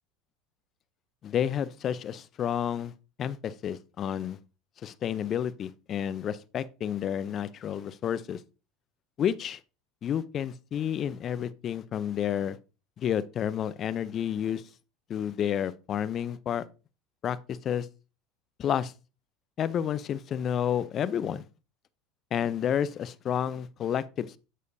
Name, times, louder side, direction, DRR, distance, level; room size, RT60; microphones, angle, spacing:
voice 1, 1.2-2.9 3.2-4.4 4.8-8.4 9.2-9.6 10.0-12.6 13.0-14.6 15.1-16.6 17.2-17.9 18.6-18.9 19.6-21.5 22.3-24.4, left 9 dB, 40° left, 0.6 m, -30 dB
7.0 x 6.4 x 2.7 m
hypercardioid pair, 80°, 0 cm